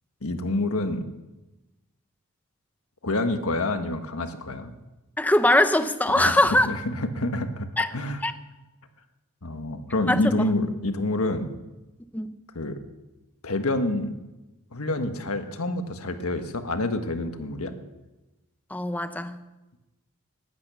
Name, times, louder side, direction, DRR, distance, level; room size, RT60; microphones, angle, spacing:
voice 1, 0.2-1.0 3.0-4.7 6.1-8.2 9.4-11.5 12.5-12.8 13.4-14.2 14.7-17.7, left 2 dB, 75° left, 7 dB, 1.6 m, -27 dB
voice 2, 5.2-6.7 7.8-7.9 8.2-8.3 10.1-10.4 12.1-12.3 18.7-19.4, left 1 dB, 5° left, 10 dB, 0.8 m, -21 dB
18.0 x 11.5 x 7.0 m, 1.1 s
head